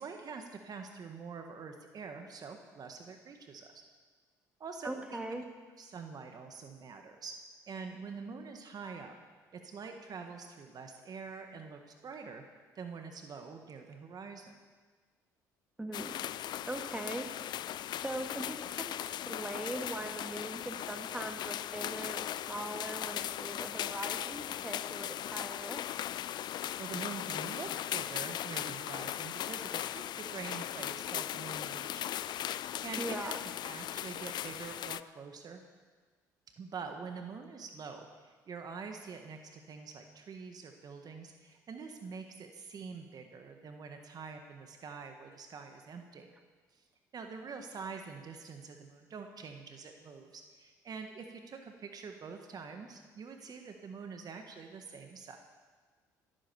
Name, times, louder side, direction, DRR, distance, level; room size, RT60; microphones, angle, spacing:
voice 1, 0.0-3.8 4.6-5.5 5.8-7.4 7.7-9.2 9.5-12.4 12.7-14.6 26.5-35.6 36.6-46.3 46.7-46.8 47.1-55.4, right 5 dB, 45° right, 5 dB, 1.6 m, -45 dB
voice 2, 4.8-5.4 15.8-16.1 16.7-17.3 18.0-25.8 33.0-33.4, right 1 dB, 10° right, 4 dB, 2.1 m, -40 dB
sound 1, 15.9-35.0, left 12 dB, 55° left, 0.4 m, -38 dB
16.0 x 9.9 x 7.0 m, 1.4 s
hypercardioid pair, 60°, 9 cm